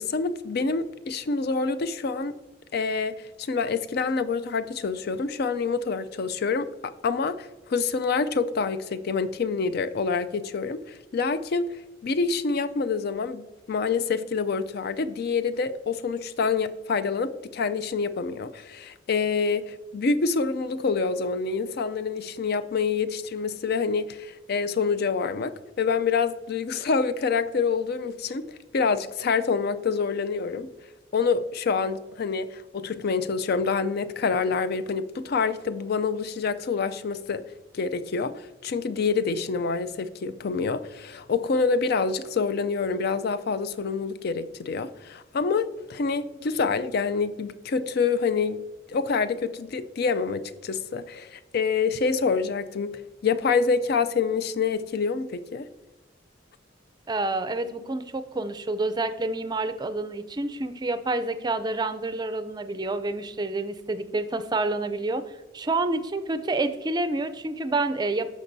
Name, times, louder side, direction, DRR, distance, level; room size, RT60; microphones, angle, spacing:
voice 1, 0.0-2.4 2.7-28.5 28.7-30.7 31.1-37.4 37.7-48.6 48.9-55.6, left 5 dB, 55° left, 0.4 m, -27 dB
voice 2, 57.1-68.3, right 2 dB, 20° right, 0.5 m, -28 dB
12.5 x 5.3 x 2.7 m
head